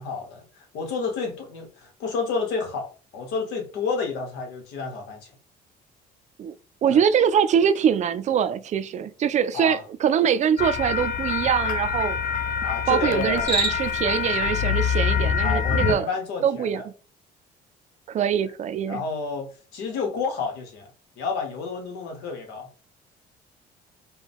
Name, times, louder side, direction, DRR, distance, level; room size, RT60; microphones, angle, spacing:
voice 1, 0.0-5.3 6.9-7.0 9.5-9.8 12.6-13.5 15.4-16.8 18.9-20.9 21.2-22.7, left 4 dB, 90° left, 1.2 m, -30 dB
voice 2, 6.8-12.2 12.9-16.1 16.4-16.8 18.1-19.0, right 8 dB, 45° right, 0.4 m, -23 dB
sound 1, 10.6-15.9, left 7 dB, 55° left, 0.5 m, -25 dB
Cricket, 13.3-14.1, right 2 dB, 35° left, 2.0 m, -27 dB
4.7 x 2.2 x 3.5 m
cardioid pair, 110°, 17 cm